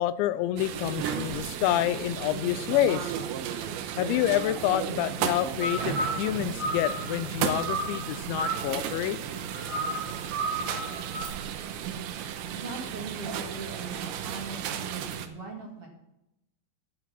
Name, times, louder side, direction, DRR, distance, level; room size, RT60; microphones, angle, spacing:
voice 1, 0.0-3.1 4.0-9.2, left 13 dB, 85° left, 14 dB, 2.8 m, -28 dB
sound 1, 0.6-15.3, right 9 dB, 85° right, 3.2 m, -34 dB
sound 2, 5.2-11.3, right 1 dB, 70° right, 1.1 m, -34 dB
voice 2, 12.5-15.9, right 3 dB, 40° right, -3 dB, 2.4 m, -40 dB
11.5 x 9.3 x 5.9 m, 0.85 s
omnidirectional pair, 5.3 m